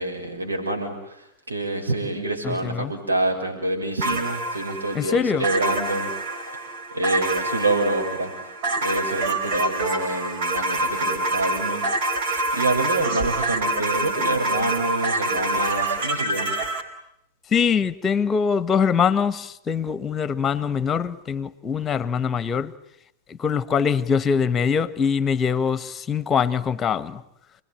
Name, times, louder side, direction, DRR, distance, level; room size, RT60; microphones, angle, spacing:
voice 1, 0.0-6.1 6.9-8.3 8.8-11.8 12.3-16.5, right 2 dB, 75° right, 6.0 m, -27 dB
voice 2, 2.4-2.9 4.9-5.5 17.5-22.7 23.3-27.2, left 6 dB, 20° left, 1.4 m, -23 dB
sound 1, 4.0-16.8, right 2 dB, 50° right, 4.4 m, -26 dB
29.0 x 21.0 x 9.8 m
figure-of-eight pair, 90°, 0 cm